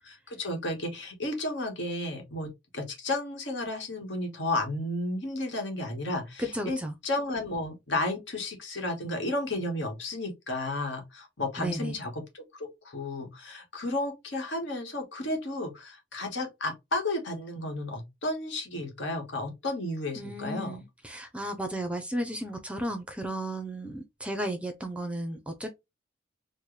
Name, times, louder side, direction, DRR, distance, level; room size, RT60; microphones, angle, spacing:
voice 1, 0.0-6.8 7.0-20.8, left 2 dB, 70° left, 1.3 m, -33 dB
voice 2, 6.4-6.9 11.6-12.0 20.2-25.7, right 1 dB, 5° right, 0.5 m, -34 dB
4.4 x 2.1 x 3.1 m
head